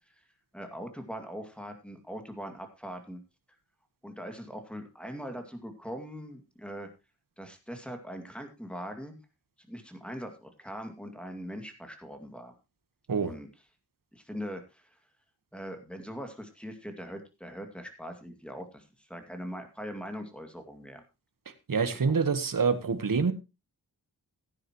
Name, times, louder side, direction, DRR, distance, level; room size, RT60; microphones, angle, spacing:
voice 1, 0.5-3.2 4.0-6.9 7.4-9.2 9.6-12.5 13.2-13.5 14.1-14.9 15.5-21.0 22.1-22.2, equal, 5° left, 5 dB, 2.3 m, -41 dB
voice 2, 21.7-23.3, right 5 dB, 55° right, 11 dB, 1.4 m, -26 dB
15.5 x 9.8 x 3.0 m, 0.26 s
wide cardioid pair, 85°, 40 cm